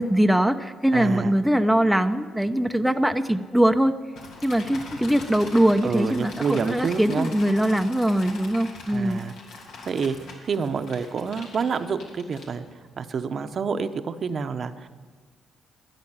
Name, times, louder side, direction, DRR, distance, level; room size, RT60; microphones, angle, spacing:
voice 1, 0.0-3.9 4.4-9.2, right 1 dB, ahead, 6 dB, 0.7 m, -22 dB
voice 2, 0.9-1.4 5.8-7.3 8.9-9.3 9.8-10.1 10.4-12.6 13.0-14.9, right 5 dB, 50° right, 9 dB, 0.9 m, -28 dB
sound 1, 4.2-12.9, left 3 dB, 80° left, 3.0 m, -42 dB
13.5 x 10.5 x 9.9 m, 1.5 s
cardioid pair, 90°, 0 cm